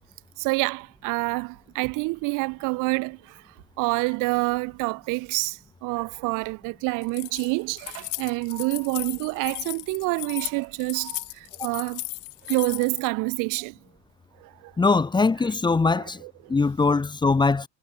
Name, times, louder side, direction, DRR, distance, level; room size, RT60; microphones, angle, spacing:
voice 1, 0.4-3.4 3.8-12.0 12.5-13.7 14.4-14.7 15.9-16.5, right 26 dB, 50° right, 2.7 m, -27 dB
Keys jangling, 7.0-13.1, left 40 dB or more, 60° left, 6.6 m, -36 dB
voice 2, 14.8-16.2 16.5-17.7, left 4 dB, 10° left, 2.4 m, -21 dB
supercardioid pair, 140°, 40 cm